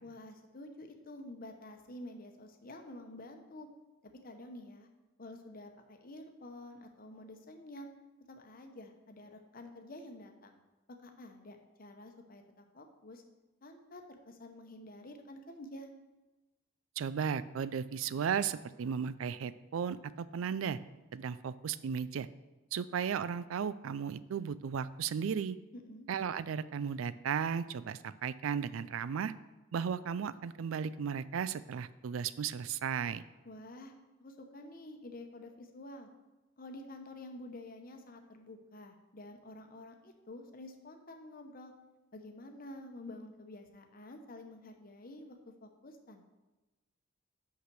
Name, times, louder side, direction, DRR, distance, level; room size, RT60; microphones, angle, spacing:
voice 1, 0.0-3.7 4.2-4.9 5.2-7.9 8.3-10.6 10.9-13.2 13.6-15.9 25.7-26.1 33.4-33.9 34.2-36.1 36.6-41.7 42.1-46.3, left 1 dB, 45° left, 4 dB, 0.9 m, -49 dB
voice 2, 17.0-20.8 21.1-22.3 22.7-25.6 26.1-29.3 29.7-33.2, right 7 dB, 80° right, 16 dB, 0.4 m, -35 dB
5.9 x 5.7 x 6.0 m, 1.1 s
head